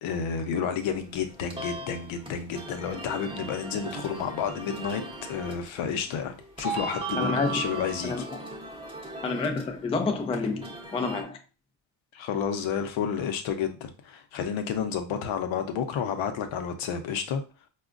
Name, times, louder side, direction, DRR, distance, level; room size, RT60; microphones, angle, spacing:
voice 1, 0.0-5.0 5.3-8.3 12.1-17.4, left 7 dB, 75° left, 0.8 m, -31 dB
sound 1, 0.8-11.2, right 2 dB, 10° right, 0.8 m, -38 dB
voice 2, 7.1-7.6 8.0-8.2 9.2-11.4, left 4 dB, 15° left, 0.3 m, -29 dB
4.8 x 2.2 x 2.4 m
cardioid pair, 120°, 47 cm